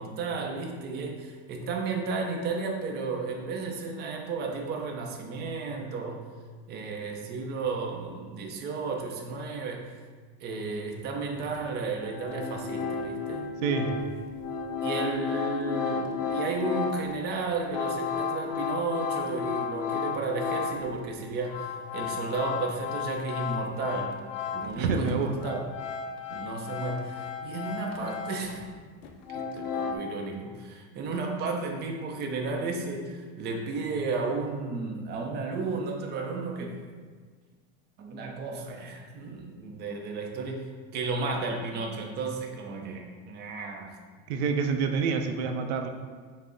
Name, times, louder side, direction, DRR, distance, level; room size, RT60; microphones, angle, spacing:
voice 1, 0.0-6.2 6.7-9.9 10.4-13.5 14.8-24.2 24.5-25.6 26.3-28.6 29.3-36.8 38.0-43.9, right 3 dB, 30° right, 1 dB, 0.5 m, -33 dB
sound 1, 11.5-11.6 12.0-20.9 21.3-24.8 25.1-28.7 29.0-30.0, left 6 dB, 40° left, 0.4 m, -33 dB
voice 2, 13.6-14.0 24.8-25.4 44.3-45.9, right 5 dB, 85° right, 5 dB, 0.5 m, -27 dB
5.6 x 2.1 x 3.8 m, 1.5 s
supercardioid pair, 145°, 32 cm